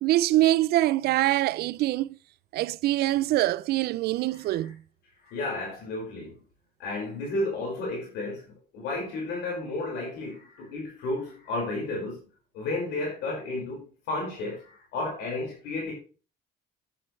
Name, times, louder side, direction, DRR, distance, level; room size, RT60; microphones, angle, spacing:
voice 1, 0.0-2.2 2.5-4.8, right 15 dB, 70° right, 0.5 m, -24 dB
voice 2, 5.2-6.3 6.8-8.4 8.7-12.2 12.5-15.9, left 2 dB, 85° left, 5.2 m, -32 dB
10.0 x 9.7 x 3.2 m
cardioid pair, 110°, 17 cm